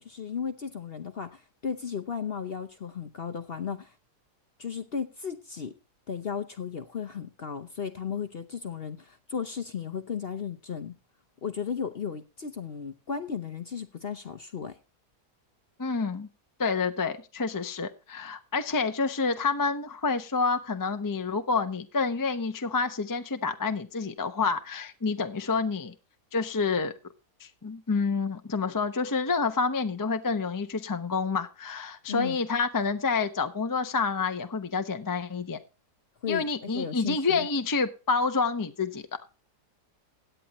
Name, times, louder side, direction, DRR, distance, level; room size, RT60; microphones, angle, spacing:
voice 1, 0.0-3.9 4.6-5.7 6.1-10.9 11.4-14.8 32.1-32.4 36.2-37.5, left 7 dB, 50° left, 0.8 m, -35 dB
voice 2, 15.8-16.3 16.6-25.9 26.3-26.9 27.4-35.6 36.3-39.0, left 4 dB, 20° left, 0.5 m, -28 dB
17.0 x 9.2 x 3.0 m
omnidirectional pair, 1.7 m